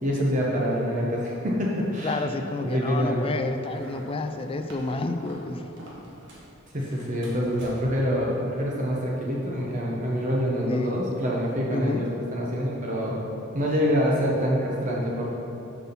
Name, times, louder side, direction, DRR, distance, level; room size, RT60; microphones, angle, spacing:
voice 1, 0.0-2.2 2.6-3.3 6.7-13.3 13.5-15.3, equal, 40° right, -3 dB, 0.9 m, -26 dB
voice 2, 2.0-5.7 10.7-11.0 11.7-12.0, left 2 dB, 25° left, 7 dB, 0.4 m, -29 dB
sound 1, 3.6-6.5 6.8-8.1, equal, 60° right, 1.6 m, -45 dB
7.1 x 5.9 x 5.8 m, 2.9 s
head